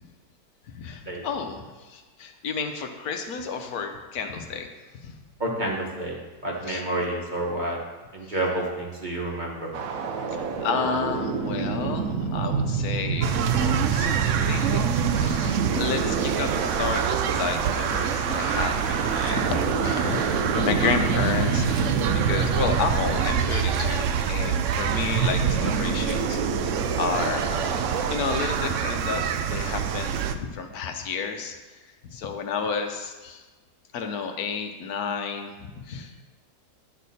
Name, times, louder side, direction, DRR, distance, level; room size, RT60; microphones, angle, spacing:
voice 1, 0.7-4.7 5.0-5.1 6.6-6.8 8.2-8.4 10.3-26.4 27.0-27.7 28.1-31.6 32.0-33.4 33.9-36.2, left 5 dB, 65° left, 5 dB, 1.2 m, -31 dB
voice 2, 5.4-6.2 6.4-7.8 8.1-9.7, right 1 dB, 30° right, -2 dB, 1.2 m, -29 dB
sound 1, 9.7-28.2, right 5 dB, 65° right, 1.0 m, -28 dB
sound 2, 13.2-30.3, right 8 dB, 85° right, 0.6 m, -27 dB
10.0 x 6.4 x 4.1 m, 1.3 s
omnidirectional pair, 1.8 m